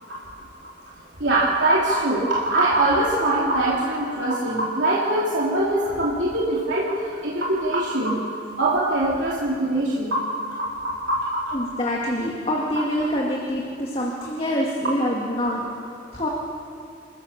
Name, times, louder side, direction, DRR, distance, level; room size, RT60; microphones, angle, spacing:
voice 1, 1.2-7.0 7.2-8.2 8.6-10.2 10.6-11.4 15.4-15.5, right 1 dB, 75° right, -6 dB, 2.8 m, -22 dB
voice 2, 11.5-15.6 16.1-16.3, equal, 30° left, -2 dB, 2.0 m, -25 dB
27.0 x 14.0 x 7.1 m, 2.5 s
head